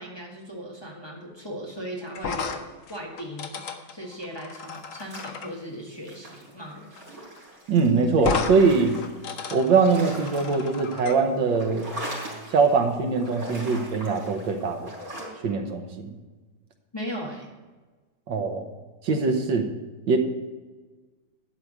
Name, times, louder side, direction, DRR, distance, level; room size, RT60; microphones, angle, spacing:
voice 1, 0.0-3.6 3.9-6.9 16.9-17.5, equal, 15° left, -2 dB, 1.4 m, -37 dB
sound 1, 2.1-5.5 7.0-7.1 7.4-7.5 8.2-8.6 8.9-11.2, left 5 dB, 55° left, 1.0 m, -33 dB
sound 2, 4.8-5.7 6.0-9.4 9.7-11.1 11.4-12.8 13.1-15.3, right 1 dB, 50° right, 4.1 m, -40 dB
voice 2, 7.7-9.0 9.5-11.9 12.5-14.9 15.4-16.1 18.3-18.7 19.0-19.7 20.1-20.2, right 4 dB, 85° right, 5 dB, 1.8 m, -22 dB
12.0 x 4.8 x 8.4 m, 1.3 s
omnidirectional pair, 2.0 m